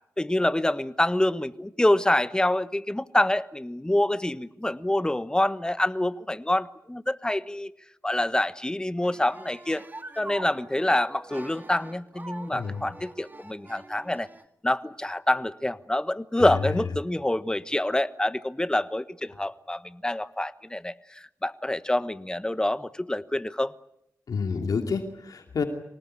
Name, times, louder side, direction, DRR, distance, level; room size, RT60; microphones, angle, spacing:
voice 1, 0.2-7.7 8.0-9.8 10.2-14.3 14.6-23.7, left 1 dB, 10° left, 14 dB, 1.2 m, -26 dB
sound 1, 9.0-14.4, right 2 dB, 30° right, 2.1 m, -44 dB
voice 2, 12.5-12.9 16.4-16.5 16.8-16.9 24.3-25.6, left 5 dB, 75° left, 5 dB, 2.7 m, -29 dB
25.0 x 19.0 x 9.9 m, 0.80 s
cardioid pair, 65°, 6 cm